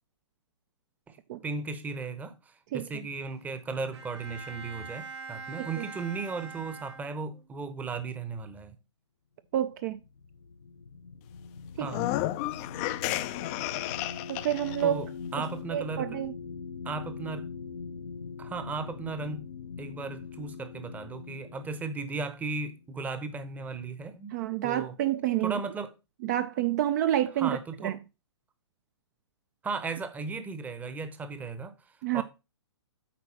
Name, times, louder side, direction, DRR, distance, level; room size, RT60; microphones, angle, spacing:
voice 1, 1.1-8.7 11.8-12.1 14.8-16.2 16.8-17.5 18.4-19.5 19.8-24.3 24.6-24.9 25.4-25.9 27.4-28.0 29.6-31.7 32.1-32.2, right 4 dB, 10° right, 0.9 m, -36 dB
voice 2, 2.7-3.0 5.6-5.8 9.5-10.0 11.8-11.9 14.3-15.0 15.7-16.3 24.3-25.6 26.2-27.6 27.8-28.0 32.0-32.2, right 12 dB, 40° right, 0.5 m, -28 dB
Bowed string instrument, 3.9-7.6, right 4 dB, 70° right, 1.7 m, -43 dB
sound 1, 9.7-23.4, left 5 dB, 75° left, 1.1 m, -42 dB
sound 2, 11.8-14.8, left 16 dB, 30° left, 0.5 m, -32 dB
8.5 x 4.2 x 5.6 m
hypercardioid pair, 135°, 15 cm